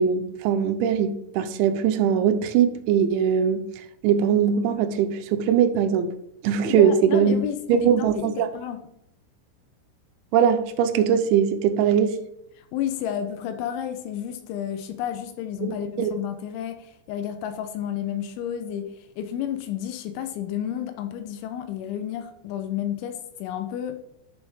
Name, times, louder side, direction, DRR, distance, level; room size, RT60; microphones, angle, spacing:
voice 1, 0.0-3.6 4.0-6.1 6.4-7.4 7.7-8.5 10.3-12.2 15.6-16.1, right 8 dB, 85° right, 8 dB, 3.0 m, -21 dB
voice 2, 6.6-8.8 12.7-18.9 19.2-24.0, left 10 dB, 85° left, 8 dB, 3.1 m, -31 dB
11.5 x 6.4 x 3.5 m, 0.77 s
omnidirectional pair, 5.4 m